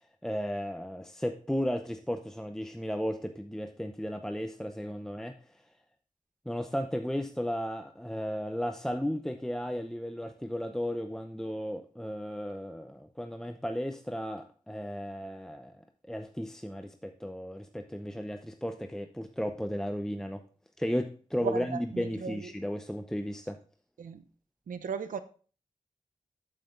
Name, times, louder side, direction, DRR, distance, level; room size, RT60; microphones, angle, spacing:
voice 1, 0.0-5.3 6.5-15.7 16.1-20.4 20.8-23.6, equal, 5° left, 0.7 m, -34 dB
voice 2, 21.4-22.5 24.0-24.2 24.7-25.2, right 6 dB, 85° right, 0.6 m, -36 dB
13.5 x 5.8 x 2.5 m
cardioid pair, 50°, 14 cm